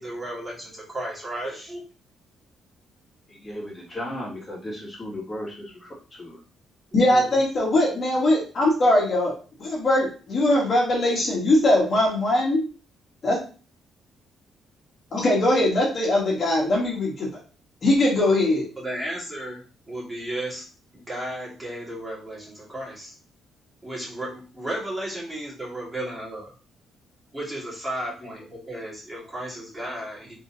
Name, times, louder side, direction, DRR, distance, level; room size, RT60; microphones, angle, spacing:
voice 1, 0.0-1.8 6.9-7.4 18.8-19.6 19.9-20.7 20.9-23.1 23.8-26.5 27.3-30.3, right 1 dB, 15° right, -5 dB, 2.1 m, -34 dB
voice 2, 3.3-5.9 6.2-6.4 28.2-28.3, left 1 dB, 25° left, -4 dB, 2.3 m, -35 dB
voice 3, 6.9-9.3 9.6-12.6 13.2-13.4 15.1-17.3 17.8-18.7, left 1 dB, 45° left, -3 dB, 1.7 m, -21 dB
4.0 x 3.5 x 2.8 m, 0.36 s
cardioid pair, 90°, 0 cm